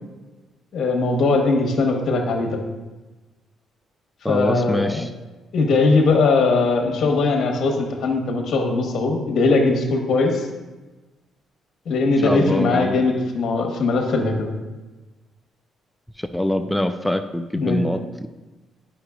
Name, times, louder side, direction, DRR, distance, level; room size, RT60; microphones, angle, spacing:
voice 1, 0.7-2.6 4.3-5.0 5.5-10.5 11.9-14.5 17.6-17.8, left 3 dB, 60° left, 1 dB, 1.1 m, -20 dB
voice 2, 4.2-5.1 12.2-13.0 16.2-18.3, left 1 dB, 5° left, 8 dB, 0.4 m, -24 dB
9.9 x 5.6 x 2.3 m, 1.2 s
cardioid pair, 90°, 0 cm